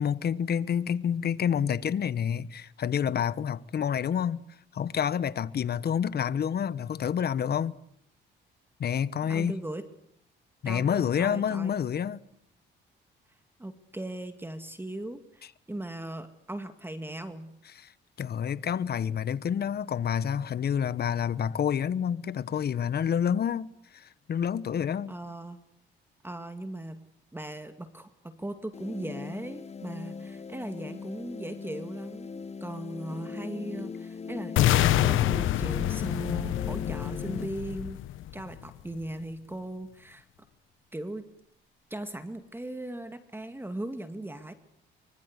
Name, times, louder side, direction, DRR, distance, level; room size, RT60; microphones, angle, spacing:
voice 1, 0.0-4.4 4.7-7.8 8.8-9.5 10.6-12.2 17.8-17.9 18.2-25.1, left 8 dB, 55° left, 1.2 m, -28 dB
voice 2, 9.3-9.8 10.6-11.7 13.6-17.5 25.1-25.6 26.2-27.0 27.3-38.0 38.3-40.3 40.9-41.2 41.9-44.5, right 1 dB, 10° right, 2.2 m, -38 dB
sound 1, 28.7-37.5, left 5 dB, 35° left, 1.0 m, -39 dB
sound 2, 34.6-38.6, left 13 dB, 85° left, 1.2 m, -26 dB
24.5 x 24.5 x 8.3 m
cardioid pair, 90°, 20 cm